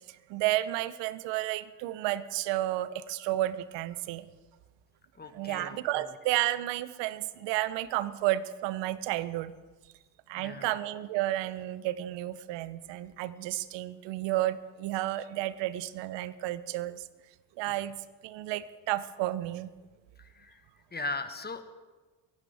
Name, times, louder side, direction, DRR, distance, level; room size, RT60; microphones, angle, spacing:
voice 1, 0.1-4.3 5.3-9.5 10.3-17.1 17.6-19.7, right 15 dB, 70° right, 16 dB, 0.9 m, -32 dB
voice 2, 5.2-5.8 10.4-10.7 20.4-20.5 20.9-21.6, left 3 dB, 20° left, 9 dB, 1.5 m, -37 dB
22.5 x 15.5 x 3.5 m, 1.3 s
hypercardioid pair, 60°, 46 cm